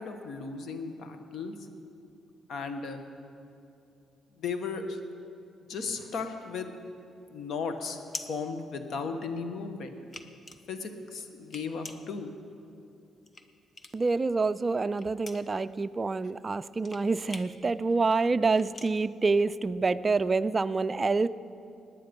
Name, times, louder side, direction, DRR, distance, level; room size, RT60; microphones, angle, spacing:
voice 1, 0.0-1.7 2.5-3.0 4.4-5.0 5.7-6.7 7.3-8.0 8.3-9.9 10.7-12.3, left 4 dB, 65° left, 7 dB, 1.2 m, -35 dB
sound 1, 6.8-9.4 9.8-14.2 14.5-20.0, left 3 dB, 30° left, 0.9 m, -46 dB
voice 2, 13.9-21.3, right 3 dB, 30° right, 13 dB, 0.4 m, -27 dB
18.0 x 9.8 x 5.3 m, 2.6 s
cardioid pair, 90°, 0 cm